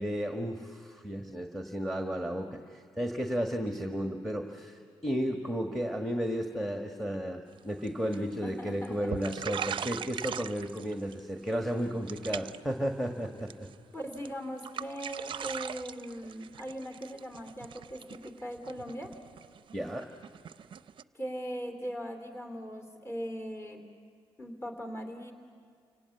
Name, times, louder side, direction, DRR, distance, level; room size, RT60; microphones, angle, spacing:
voice 1, 0.0-13.7 19.7-20.1, equal, ahead, 4 dB, 1.5 m, -33 dB
sound 1, 7.6-8.6 8.8-8.9 9.1-11.2 11.5-11.8 12.1-12.7 13.0-13.7 14.1-14.3 14.6-21.0, right 8 dB, 55° right, 0.5 m, -40 dB
voice 2, 8.4-9.0 13.9-19.1 21.1-23.8 24.4-25.3, equal, 25° left, 5 dB, 2.9 m, -39 dB
29.5 x 17.5 x 8.3 m, 2.2 s
cardioid pair, 80°, 10 cm